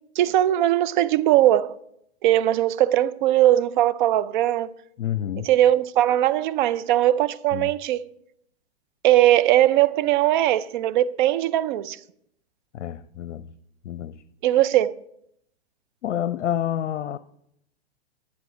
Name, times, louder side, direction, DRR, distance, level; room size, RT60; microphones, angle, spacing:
voice 1, 0.2-1.8 2.2-4.7 5.4-8.0 9.0-12.0 14.4-14.9, right 13 dB, 45° right, 0.6 m, -20 dB
voice 2, 5.0-5.5 7.5-7.7 12.7-13.5 13.8-14.2 16.0-17.2, left 10 dB, 80° left, 0.6 m, -28 dB
11.0 x 8.5 x 5.0 m
hypercardioid pair, 125°, 35 cm